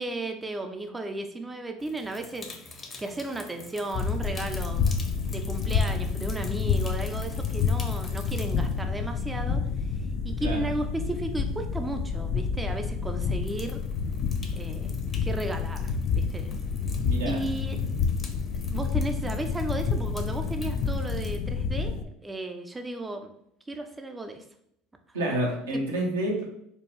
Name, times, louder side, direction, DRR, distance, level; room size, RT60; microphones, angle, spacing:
voice 1, 0.0-4.8 5.3-13.8 14.5-16.5 17.3-17.8 18.7-23.3 23.7-24.4 25.2-25.4 25.7-25.8, right 2 dB, 15° right, 5 dB, 0.4 m, -35 dB
sound 1, 1.8-11.1 11.9-12.0 13.4-21.4, left 3 dB, 30° left, 0.7 m, -47 dB
sound 2, 3.9-22.0, left 5 dB, 55° left, 0.3 m, -29 dB
voice 2, 17.0-17.4 25.1-26.4, right 1 dB, 85° right, -1 dB, 1.0 m, -28 dB
4.4 x 2.3 x 3.1 m, 0.73 s
hypercardioid pair, 75°, 0 cm